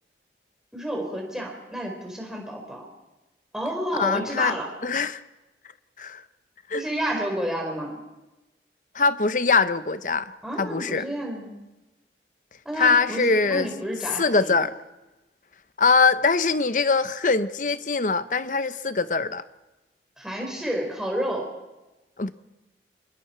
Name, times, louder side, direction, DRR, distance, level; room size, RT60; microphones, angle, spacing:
voice 1, 0.7-2.8 3.5-4.7 6.7-8.0 10.4-11.6 12.6-14.5 20.2-21.5, equal, 5° right, -1 dB, 4.3 m, -30 dB
voice 2, 3.9-4.5 4.8-5.2 6.0-6.2 6.7-6.8 8.9-10.3 10.6-11.0 12.8-13.7 14.2-14.7 15.8-19.4 22.2-22.3, left 4 dB, 45° left, 13 dB, 0.8 m, -22 dB
27.0 x 22.0 x 4.5 m, 1.1 s
head